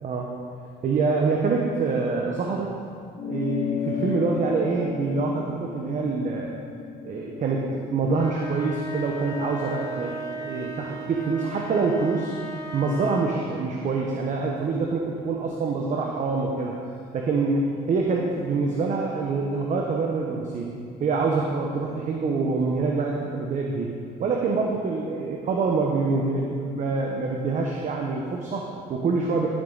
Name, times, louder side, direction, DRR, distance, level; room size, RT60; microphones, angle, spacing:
voice 1, 0.0-0.3 0.8-2.7 3.2-6.6 7.0-10.1 10.4-12.3 12.7-16.7 17.1-20.7 21.0-29.5, right 4 dB, 45° right, 0 dB, 1.0 m, -26 dB
sound 1, 3.2-8.0, left 7 dB, 45° left, 0.6 m, -33 dB
sound 2, 8.0-13.5, right 2 dB, 20° left, 1.4 m, -36 dB
12.0 x 7.5 x 4.0 m, 2.3 s
cardioid pair, 110°, 17 cm